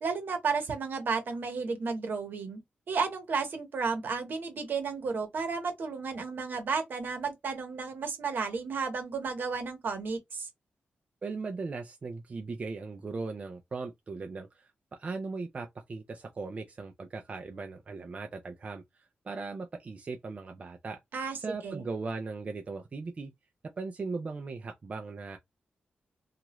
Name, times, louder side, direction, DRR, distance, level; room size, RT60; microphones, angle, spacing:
voice 1, 0.0-2.6 2.9-10.5 21.1-21.4 21.6-21.8, right 5 dB, 65° right, 1.0 m, -33 dB
voice 2, 11.2-14.7 15.0-21.0 21.4-23.3 23.8-25.4, right 4 dB, 35° right, 0.4 m, -38 dB
2.8 x 2.4 x 3.0 m
wide cardioid pair, 130°, 4 cm